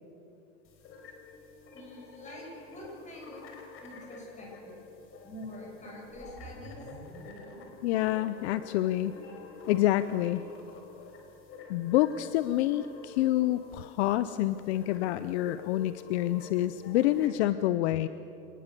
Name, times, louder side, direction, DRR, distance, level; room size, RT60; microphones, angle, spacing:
sound 1, 0.6-17.3, left 4 dB, 35° left, 4.4 m, -49 dB
voice 1, 1.7-3.4 3.8-4.8 5.2-6.9, equal, 20° left, -2 dB, 7.4 m, -46 dB
sound 2, 6.1-10.3, right 2 dB, 5° right, 5.1 m, -52 dB
voice 2, 7.8-9.2 9.7-10.4 11.7-18.1, left 14 dB, 65° left, 13 dB, 0.8 m, -27 dB
27.5 x 19.5 x 6.9 m, 2.9 s
supercardioid pair, 130°, 36 cm